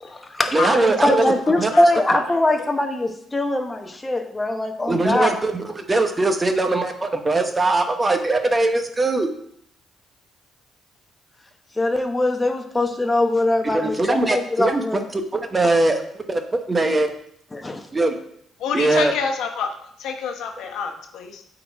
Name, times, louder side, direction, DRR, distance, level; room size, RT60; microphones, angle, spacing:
voice 1, 0.0-0.7 1.0-5.3 11.8-15.0 15.6-15.7 17.5-17.8, left 1 dB, 15° left, 5 dB, 1.0 m, -22 dB
voice 2, 0.5-1.3 1.6-1.7 4.9-9.3 13.6-14.8 15.1-16.0 16.3-17.2 17.9-18.2 18.7-19.1, right 2 dB, 25° right, 6 dB, 0.9 m, -21 dB
voice 3, 1.5-2.0 18.6-19.7 20.0-21.4, left 6 dB, 80° left, 4 dB, 1.0 m, -27 dB
8.3 x 4.0 x 4.6 m, 0.68 s
cardioid pair, 90°, 0 cm